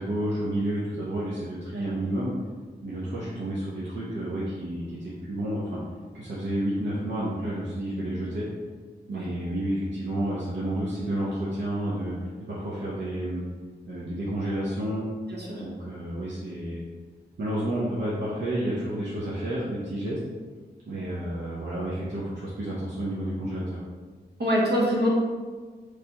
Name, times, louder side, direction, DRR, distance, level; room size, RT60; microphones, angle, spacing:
voice 1, 0.0-2.3 2.8-5.8 6.1-8.5 9.1-13.4 13.8-15.0 15.6-16.8 17.4-20.2 20.9-23.8, right 1 dB, 80° right, -7 dB, 0.8 m, -30 dB
voice 2, 15.3-15.6 24.4-25.1, equal, 65° right, -4 dB, 1.3 m, -24 dB
4.7 x 3.3 x 2.9 m, 1.4 s
cardioid pair, 50°, 18 cm